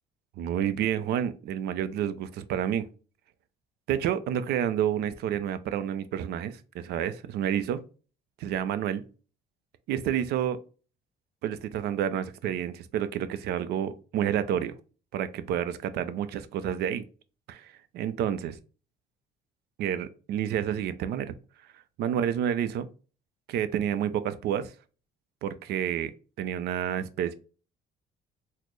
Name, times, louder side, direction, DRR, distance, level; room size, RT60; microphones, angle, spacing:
voice 1, 0.4-2.9 3.9-7.8 8.4-9.0 9.9-10.6 11.4-14.7 15.1-17.0 17.5-18.6 19.8-21.3 21.6-22.9 23.5-24.7 25.4-26.1 26.4-27.3, right 9 dB, 75° right, 0.5 m, -29 dB
4.1 x 2.1 x 3.1 m
cardioid pair, 110°, 17 cm